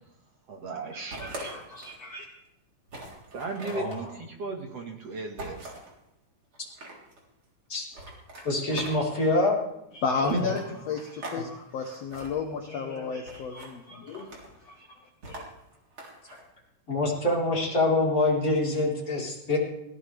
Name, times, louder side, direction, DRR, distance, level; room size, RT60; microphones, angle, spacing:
voice 1, 0.5-1.6 3.3-5.7 10.3-10.6, right 4 dB, 50° right, 2 dB, 2.3 m, -35 dB
sound 1, 1.1-2.0 2.5-2.6 2.9-4.0 5.4-5.9 6.5-7.2 7.9-9.3 10.2-11.4 11.7-12.3 13.3-13.7 14.1-14.6 15.2-16.4, right 2 dB, 35° right, 4.2 m, -42 dB
voice 2, 1.2-2.3 9.9-14.9 15.3-15.4, left 5 dB, 65° left, 3 dB, 1.7 m, -33 dB
voice 3, 8.4-9.6 16.9-19.6, left 2 dB, 20° left, -5 dB, 4.3 m, -25 dB
21.0 x 17.5 x 3.4 m, 0.85 s
omnidirectional pair, 4.2 m